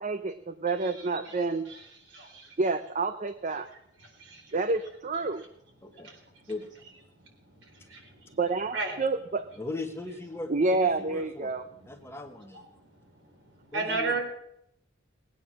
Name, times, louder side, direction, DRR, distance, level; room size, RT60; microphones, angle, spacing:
voice 1, 0.0-1.7 2.6-3.7 4.5-5.4 8.4-9.5 10.5-11.6, right 3 dB, 40° right, 10 dB, 0.6 m, -28 dB
voice 2, 2.1-2.5 4.2-4.5 6.0-6.2 7.7-8.4 8.7-8.9 12.8-12.9 13.7-14.2, right 3 dB, 65° right, 2 dB, 4.0 m, -33 dB
voice 3, 9.6-11.5 11.8-12.6 13.7-14.2, left 2 dB, 15° left, 4 dB, 1.3 m, -38 dB
20.5 x 9.3 x 6.3 m, 0.77 s
head